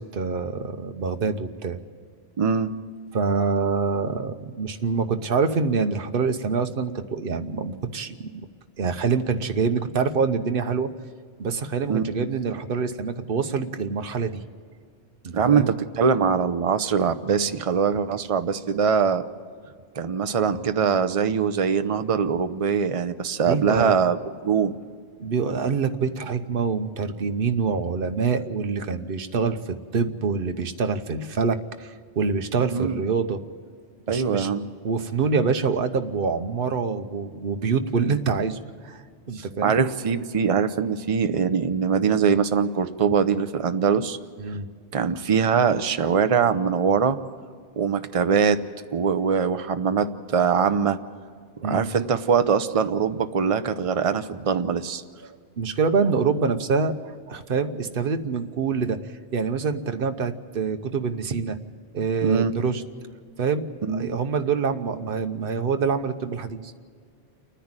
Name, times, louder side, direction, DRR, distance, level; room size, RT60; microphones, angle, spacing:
voice 1, 0.1-1.8 3.1-8.3 8.8-10.9 11.4-14.4 15.2-15.7 23.4-24.0 25.2-33.4 34.1-34.5 34.8-38.6 38.8-39.0 39.3-39.7 44.4-44.7 51.6-51.9 55.6-59.0 59.3-61.6 61.9-62.8 63.4-63.7 63.9-66.6, right 5 dB, 60° right, 8 dB, 1.1 m, -25 dB
voice 2, 2.4-2.7 11.9-12.3 15.3-19.2 20.0-24.7 32.7-33.0 34.1-34.7 39.3-44.2 44.9-47.2 47.8-48.6 48.9-51.0 51.6-55.0 62.2-62.5 63.8-64.1, right 6 dB, 35° right, 10 dB, 0.7 m, -22 dB
29.0 x 10.0 x 8.9 m, 2.1 s
omnidirectional pair, 1.1 m